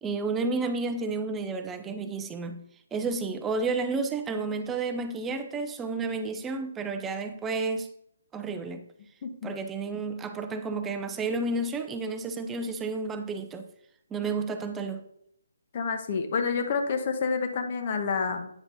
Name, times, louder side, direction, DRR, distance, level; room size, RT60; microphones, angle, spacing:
voice 1, 0.0-2.6 2.9-7.9 8.3-8.8 9.4-13.7 14.1-15.0, right 3 dB, 10° right, 0.5 m, -31 dB
voice 2, 9.2-9.5 15.7-18.5, left 5 dB, 40° left, 1.0 m, -28 dB
9.1 x 5.7 x 2.7 m
hypercardioid pair, 155°, 0 cm